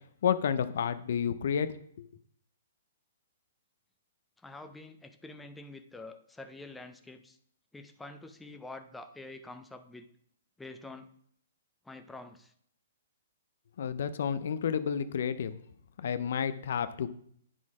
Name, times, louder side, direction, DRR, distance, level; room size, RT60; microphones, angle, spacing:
voice 1, 0.2-1.7 2.0-2.1 13.8-15.6 16.0-17.1, left 8 dB, 65° left, 13 dB, 0.5 m, -30 dB
voice 2, 4.4-7.4 7.7-10.1 10.6-11.1 11.8-12.5, left 2 dB, 5° left, 6 dB, 0.6 m, -47 dB
9.1 x 4.2 x 4.8 m, 0.65 s
hypercardioid pair, 145°, 0 cm